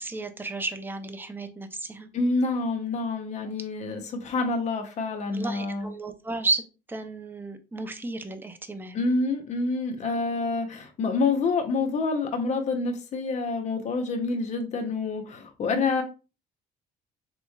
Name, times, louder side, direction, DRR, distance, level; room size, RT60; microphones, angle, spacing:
voice 1, 0.0-2.1 5.3-9.0, right 3 dB, 10° right, 8 dB, 0.4 m, -33 dB
voice 2, 2.1-5.9 8.9-16.0, left 3 dB, 45° left, 5 dB, 0.7 m, -27 dB
3.5 x 3.0 x 2.2 m, 0.32 s
cardioid pair, 110°, 17 cm